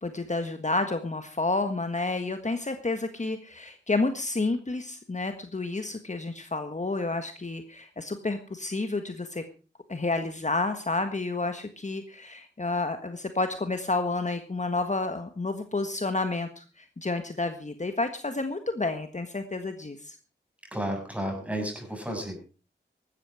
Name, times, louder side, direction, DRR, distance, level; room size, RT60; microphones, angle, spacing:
voice 1, 0.0-9.4 9.9-20.2, left 3 dB, 40° left, 7 dB, 1.5 m, -30 dB
voice 2, 20.7-22.4, equal, 5° right, 3 dB, 7.1 m, -32 dB
16.0 x 12.5 x 4.9 m, 0.35 s
wide cardioid pair, 70°, 19 cm